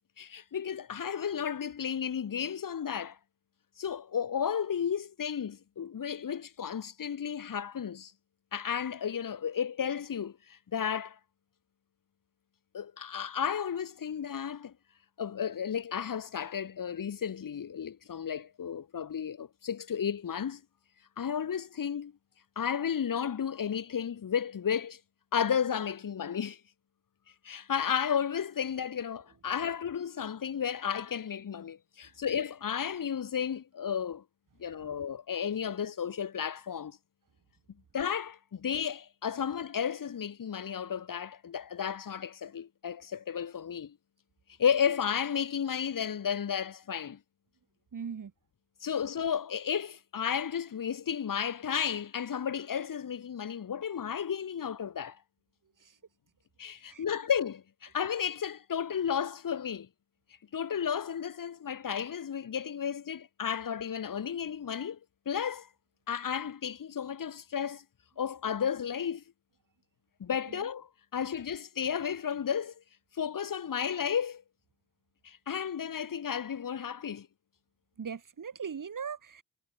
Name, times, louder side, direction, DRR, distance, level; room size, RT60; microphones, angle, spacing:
voice 1, 0.2-3.2 3.8-8.1 8.5-11.2 12.7-14.7 15.2-20.6 21.2-22.1 22.5-25.0 25.3-26.6 27.4-34.2 34.6-37.0 37.9-44.0 44.6-47.2 48.8-55.2 56.6-59.9 60.5-65.0 65.2-65.7 66.1-67.8 68.2-69.2 70.2-72.7 73.2-74.4 75.2-77.3, left 8 dB, 75° left, 1.5 m, -33 dB
voice 2, 47.9-48.3 55.8-56.0 56.9-57.0 70.5-70.7 78.0-79.4, right 6 dB, 70° right, 3.4 m, -40 dB
wide cardioid pair, 145°, 33 cm